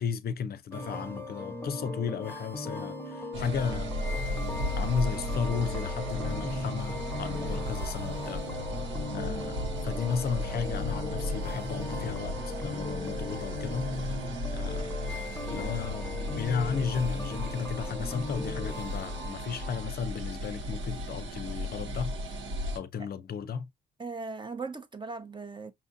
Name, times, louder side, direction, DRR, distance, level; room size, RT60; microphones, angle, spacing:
voice 1, 0.0-3.9 4.8-8.4 9.1-13.9 14.5-15.1 15.5-22.1 22.7-23.7, left 6 dB, 50° left, 0.6 m, -34 dB
sound 1, 0.7-19.9, left 2 dB, 10° left, 0.6 m, -38 dB
sound 2, 3.3-22.8, left 1 dB, 70° right, 1.0 m, -35 dB
voice 2, 9.1-9.5 15.6-15.7 23.0-23.1 24.0-25.7, right 4 dB, 25° right, 0.8 m, -39 dB
5.8 x 2.5 x 2.6 m
cardioid pair, 90°, 20 cm